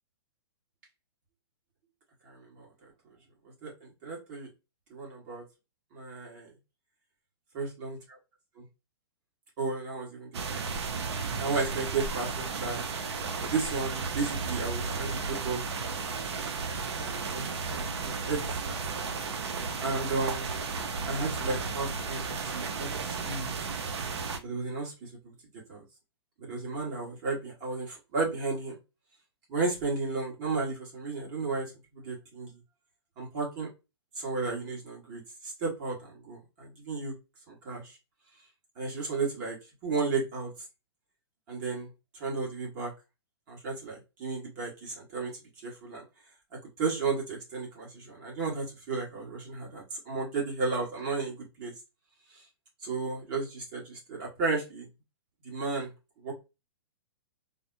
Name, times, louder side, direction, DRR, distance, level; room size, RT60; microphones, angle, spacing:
voice 1, 2.2-2.7 3.6-4.5 4.9-5.4 5.9-6.5 7.5-8.0 9.6-10.6 11.4-12.8 13.4-15.6 16.8-18.4 18.6-18.8 19.8-20.5 21.1-23.6 24.4-25.3 25.7-25.8 26.4-28.8 29.5-32.5 33.2-33.7 34.2-37.1 37.5-38.0 38.8-39.6 39.8-40.5 41.5-41.9 42.2-42.9 43.5-45.3 45.6-46.0 46.8-51.7 52.8-54.9 55.4-55.9 56.2-56.3, right 4 dB, 45° right, -3 dB, 1.6 m, -33 dB
sound 1, 10.3-24.4, right 4 dB, 70° right, 0.7 m, -34 dB
3.8 x 2.2 x 2.7 m, 0.27 s
hypercardioid pair, 130°, 14 cm